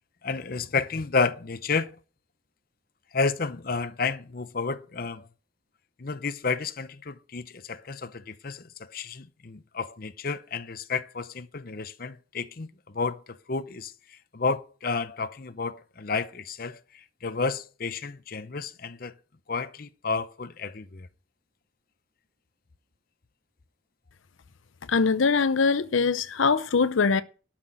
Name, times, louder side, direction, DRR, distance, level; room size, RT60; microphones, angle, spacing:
voice 1, 0.2-2.0 3.1-5.3 6.0-19.1 19.5-21.1, left 4 dB, 50° left, 0.7 m, -31 dB
voice 2, 24.9-27.2, left 5 dB, 85° left, 0.6 m, -22 dB
12.5 x 6.0 x 7.6 m
head